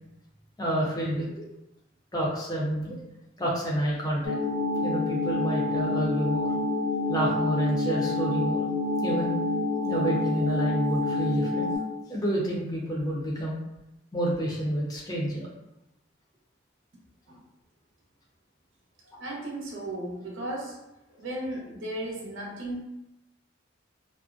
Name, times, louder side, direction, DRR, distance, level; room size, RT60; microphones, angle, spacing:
voice 1, 0.6-1.3 2.1-3.0 3.4-4.4 4.8-6.5 7.1-8.6 9.0-9.3 9.8-11.7 12.1-13.6 14.1-15.5, right 1 dB, 20° left, -4 dB, 0.5 m, -29 dB
sound 1, 4.2-11.8, left 2 dB, 80° left, 0.6 m, -28 dB
voice 2, 19.2-20.8 21.2-22.8, right 1 dB, 80° right, -3 dB, 0.7 m, -35 dB
2.4 x 2.1 x 2.5 m, 0.89 s
head